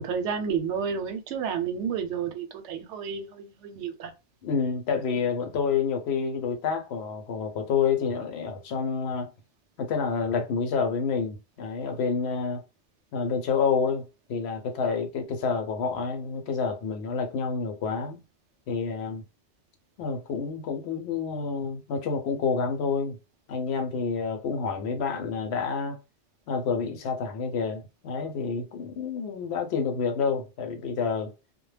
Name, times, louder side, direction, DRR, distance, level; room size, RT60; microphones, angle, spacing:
voice 1, 0.0-4.1, right 6 dB, 90° right, 0.9 m, -31 dB
voice 2, 4.4-9.3 9.8-12.6 13.1-18.2 18.7-19.2 20.0-23.2 23.5-26.0 26.5-31.3, left 5 dB, 70° left, 0.8 m, -28 dB
2.2 x 2.0 x 3.2 m
omnidirectional pair, 1.2 m